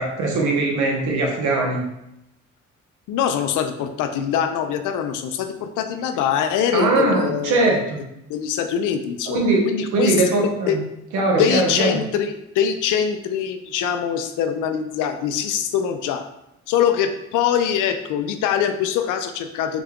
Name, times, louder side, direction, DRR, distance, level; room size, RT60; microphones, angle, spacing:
voice 1, 0.0-1.8 6.7-8.0 9.3-10.8 11.1-12.0, right 2 dB, 85° right, -1 dB, 1.0 m, -21 dB
voice 2, 3.1-7.9 8.3-10.2 10.7-10.8 11.3-16.2 16.7-19.8, left 8 dB, 85° left, 8 dB, 0.5 m, -23 dB
3.9 x 2.3 x 3.5 m, 0.85 s
cardioid pair, 90°, 30 cm